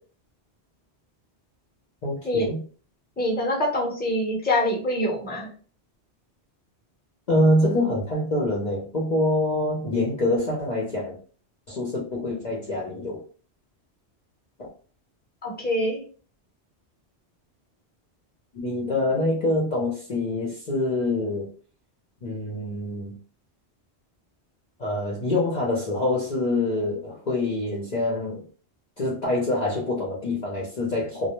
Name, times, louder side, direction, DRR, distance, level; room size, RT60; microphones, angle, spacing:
voice 1, 2.0-2.6 7.3-11.2 11.7-13.2 18.5-21.5 22.2-23.2 24.8-28.4 29.0-31.3, left 1 dB, 50° left, -5 dB, 0.6 m, -25 dB
voice 2, 3.2-5.5 15.4-16.0, left 1 dB, 10° left, -3 dB, 0.7 m, -25 dB
2.2 x 2.1 x 2.9 m, 0.41 s
omnidirectional pair, 1.1 m